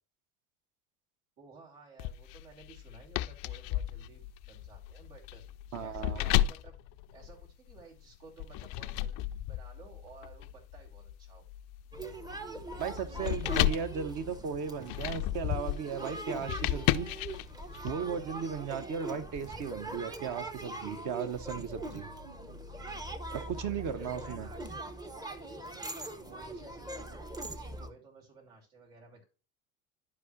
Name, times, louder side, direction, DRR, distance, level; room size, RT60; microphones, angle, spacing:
voice 1, 1.4-5.4 5.8-6.7 7.1-11.5 23.3-24.7 25.2-29.2, right 4 dB, 75° right, 3.1 m, -55 dB
sound 1, 2.0-7.8 8.4-17.9, left 14 dB, 50° left, 0.5 m, -34 dB
voice 2, 5.7-6.2 12.8-17.1 17.8-22.1 23.3-24.5, right 7 dB, 45° right, 0.9 m, -36 dB
sound 2, 11.9-27.9, right 1 dB, 10° right, 0.7 m, -42 dB
11.5 x 4.8 x 2.5 m
hypercardioid pair, 75°, 44 cm